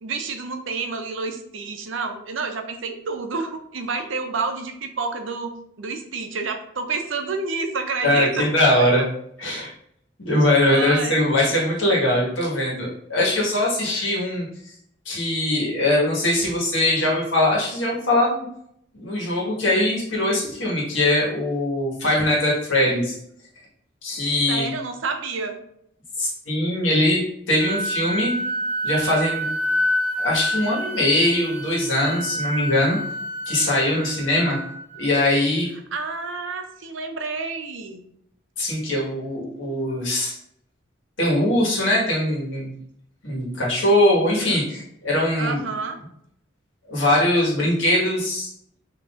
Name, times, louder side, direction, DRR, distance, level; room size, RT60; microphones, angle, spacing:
voice 1, 0.0-8.5 8.8-9.1 10.6-11.2 24.5-25.6 35.9-38.0 45.4-46.0, right 4 dB, 85° right, 6 dB, 0.6 m, -29 dB
voice 2, 8.0-9.0 9.4-9.7 10.2-14.5 15.0-18.4 18.9-23.2 24.0-24.7 26.2-27.2 27.5-28.3 28.8-29.5 30.2-33.0 33.5-34.6 34.9-35.7 38.6-40.4 41.2-42.7 43.2-45.6 46.9-48.5, left 1 dB, 85° left, -4 dB, 1.6 m, -21 dB
Wind instrument woodwind instrument, 27.6-35.3, equal, 5° right, 1.1 m, -28 dB
5.8 x 2.9 x 2.5 m, 0.71 s
head